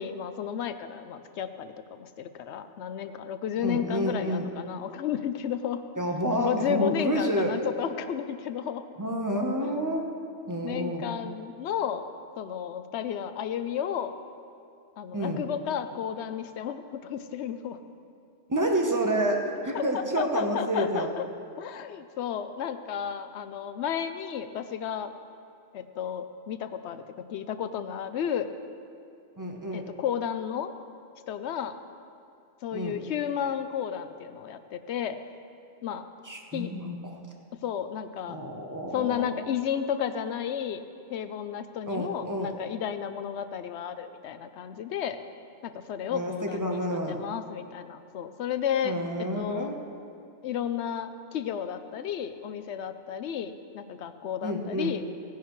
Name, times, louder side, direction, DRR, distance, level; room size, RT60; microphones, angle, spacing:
voice 1, 0.0-5.8 6.4-8.8 9.6-9.7 10.6-12.1 12.4-14.2 15.0-17.8 19.7-21.3 21.6-25.1 25.7-28.5 29.7-30.7 31.3-31.8 32.6-35.2 35.8-36.0 36.5-36.7 37.6-38.4 38.9-40.8 41.1-45.2 45.6-46.8 47.1-49.7 50.4-55.0, left 8 dB, 65° left, 10 dB, 0.8 m, -32 dB
voice 2, 3.6-4.5 6.0-7.5 9.0-10.0 10.5-11.0 15.1-15.4 18.5-21.1 29.4-29.8 32.7-33.0 36.2-37.2 38.3-39.4 41.9-42.5 46.1-47.2 48.8-49.7 54.4-54.9, equal, 15° right, 1 dB, 0.8 m, -29 dB
17.5 x 10.5 x 3.1 m, 2.5 s
omnidirectional pair, 1.4 m